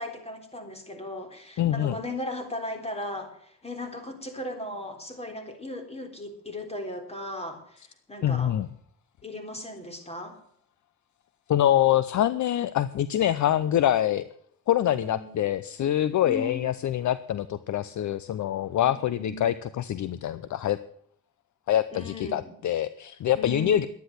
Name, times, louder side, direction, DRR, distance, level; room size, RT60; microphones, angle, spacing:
voice 1, 0.0-8.6 9.2-10.4 14.8-15.4 16.2-16.6 18.8-19.5 21.9-22.6 23.3-23.9, left 1 dB, 15° left, 5 dB, 3.7 m, -37 dB
voice 2, 1.6-2.0 8.2-8.7 11.5-14.3 14.7-20.8 21.7-23.9, left 11 dB, 50° left, 15 dB, 0.7 m, -25 dB
12.0 x 10.0 x 7.9 m, 0.66 s
cardioid pair, 95°, 38 cm